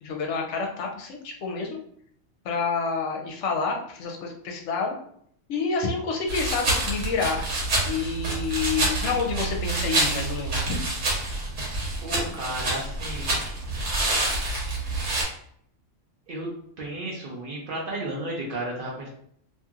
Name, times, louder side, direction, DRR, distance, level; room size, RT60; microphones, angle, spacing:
voice 1, 0.0-1.7 2.4-5.0 5.5-7.4 7.9-10.8, left 4 dB, 70° left, 1 dB, 0.8 m, -28 dB
sound 1, 6.3-15.2, right 2 dB, 80° right, 1.3 m, -27 dB
voice 2, 12.0-13.4 16.3-16.5 16.8-19.1, right 1 dB, 55° right, -3 dB, 0.6 m, -33 dB
2.8 x 2.6 x 2.4 m, 0.66 s
omnidirectional pair, 1.3 m